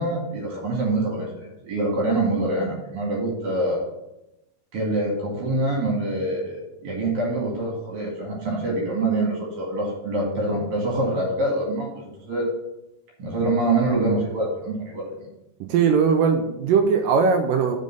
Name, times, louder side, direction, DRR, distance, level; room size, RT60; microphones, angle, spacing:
voice 1, 0.0-3.8 4.7-12.5 13.2-15.1, right 2 dB, 55° right, -3 dB, 3.0 m, -25 dB
voice 2, 15.7-17.8, right 6 dB, 85° right, 4 dB, 2.0 m, -19 dB
6.3 x 5.3 x 6.6 m, 0.90 s
omnidirectional pair, 4.5 m